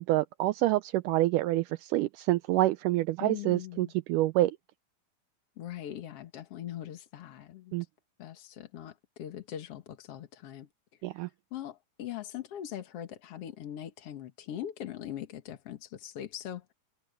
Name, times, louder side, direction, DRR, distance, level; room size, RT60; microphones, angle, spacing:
voice 1, 0.0-4.6 7.7-7.9 11.0-11.3, right 16 dB, 85° right, 1.9 m, -27 dB
voice 2, 3.2-3.9 5.6-7.8 8.2-10.7 11.1-16.7, left 11 dB, 55° left, 1.8 m, -41 dB
omnidirectional pair, 4.1 m